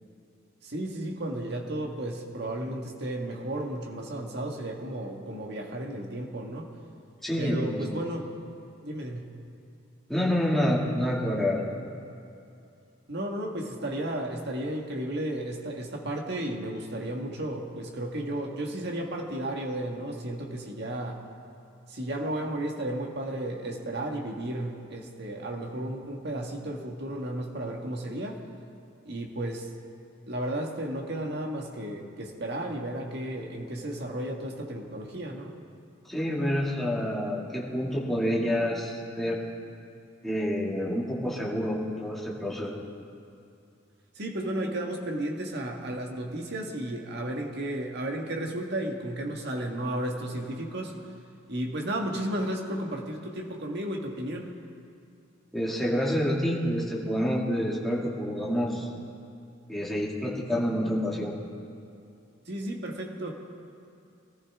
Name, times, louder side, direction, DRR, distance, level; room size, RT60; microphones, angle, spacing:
voice 1, 0.6-6.7 7.4-8.3 8.8-9.3 13.1-21.2 21.9-28.4 29.1-29.7 30.3-35.5 44.2-51.0 51.5-54.5 62.5-63.3, right 1 dB, 55° right, 1 dB, 1.7 m, -33 dB
voice 2, 7.2-7.8 10.1-11.6 36.1-39.4 40.2-42.7 55.5-58.9 59.7-61.4, equal, ahead, -5 dB, 2.4 m, -28 dB
23.5 x 14.5 x 3.7 m, 2.7 s
head